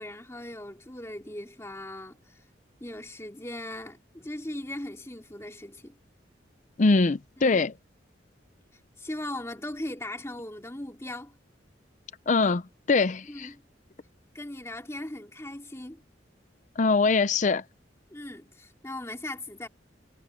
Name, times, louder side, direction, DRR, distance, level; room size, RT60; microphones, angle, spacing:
voice 1, 0.0-2.4 2.8-6.0 7.4-7.6 9.0-11.3 13.3-13.6 14.3-16.0 18.1-19.7, left 1 dB, 15° left, 2.5 m, -39 dB
voice 2, 6.8-7.7 12.3-12.6 12.9-13.5 16.8-17.6, left 3 dB, 40° left, 0.5 m, -22 dB
head